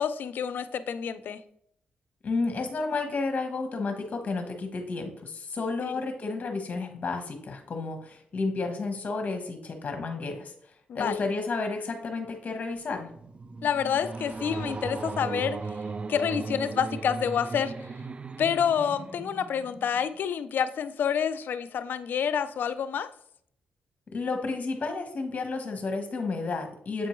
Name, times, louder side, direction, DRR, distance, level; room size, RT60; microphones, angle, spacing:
voice 1, 0.0-1.4 5.8-6.0 10.9-11.3 13.6-15.6 16.1-17.7 18.4-23.1, left 7 dB, 70° left, 14 dB, 0.4 m, -28 dB
voice 2, 2.2-10.5 10.9-13.1 24.1-27.1, left 3 dB, 45° left, 5 dB, 1.0 m, -31 dB
sound 1, 12.8-20.2, right 3 dB, 35° right, 0.4 m, -37 dB
7.6 x 4.3 x 3.1 m, 0.68 s
cardioid pair, 70°, 3 cm